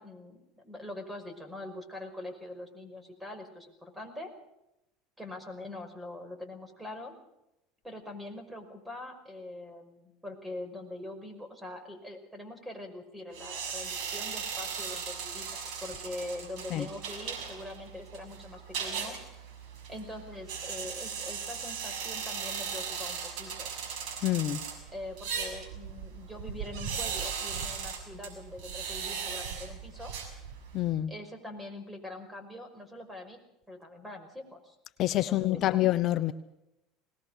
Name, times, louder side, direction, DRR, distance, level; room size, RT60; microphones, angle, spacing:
voice 1, 0.0-4.3 5.2-7.1 7.8-19.2 19.9-23.7 24.9-30.1 31.1-33.4 33.7-34.8 35.2-35.8, left 1 dB, 5° right, 8 dB, 5.4 m, -43 dB
sound 1, 13.3-30.8, right 6 dB, 65° right, 6.5 m, -38 dB
voice 2, 24.2-24.6 30.7-31.1 35.0-36.3, left 14 dB, 50° left, 12 dB, 0.9 m, -27 dB
21.0 x 19.0 x 6.6 m, 0.88 s
supercardioid pair, 95°, 0 cm